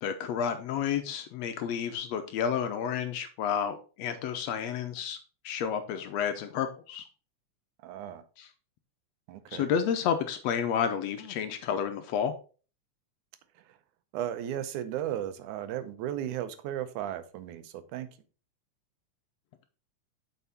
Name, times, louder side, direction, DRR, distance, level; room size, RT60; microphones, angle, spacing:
voice 1, 0.0-5.2 5.4-7.0 8.4-8.5 9.5-12.3, left 8 dB, 75° left, 8 dB, 1.7 m, -30 dB
voice 2, 7.8-8.2 9.3-9.7 13.6-13.8 14.1-18.1, right 11 dB, 85° right, 11 dB, 2.2 m, -35 dB
7.9 x 4.7 x 4.0 m, 0.36 s
omnidirectional pair, 3.4 m